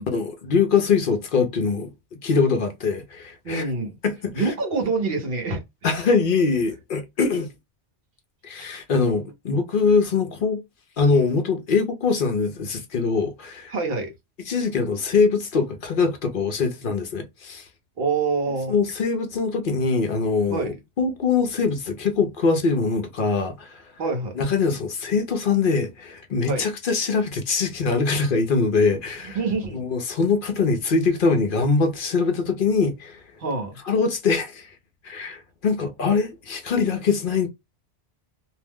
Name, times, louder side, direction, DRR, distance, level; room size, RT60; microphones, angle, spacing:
voice 1, 0.1-1.9 2.2-3.6 4.0-4.5 5.8-7.5 8.4-10.6 11.0-13.7 14.5-17.6 18.7-23.8 24.4-29.4 29.7-33.2 33.9-34.7 35.0-37.5, left 4 dB, 55° left, 0.7 m, -23 dB
voice 2, 3.4-3.9 4.3-5.6 5.9-6.0 8.6-8.7 13.7-14.1 18.0-18.7 20.5-20.8 24.0-24.4 26.5-26.7 29.2-29.8 33.4-33.8, right 3 dB, 55° right, 1.1 m, -26 dB
2.7 x 2.0 x 3.4 m
omnidirectional pair, 1.2 m